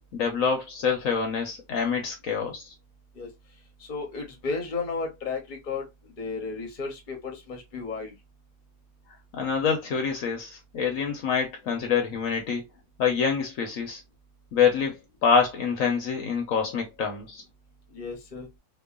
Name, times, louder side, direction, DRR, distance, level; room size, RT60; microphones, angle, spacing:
voice 1, 0.1-2.7 9.3-12.6 13.0-14.0 14.5-17.4, left 6 dB, 70° left, 1.0 m, -26 dB
voice 2, 3.8-8.1 17.9-18.5, left 4 dB, 40° left, 0.8 m, -34 dB
3.0 x 2.1 x 2.3 m
omnidirectional pair, 1.6 m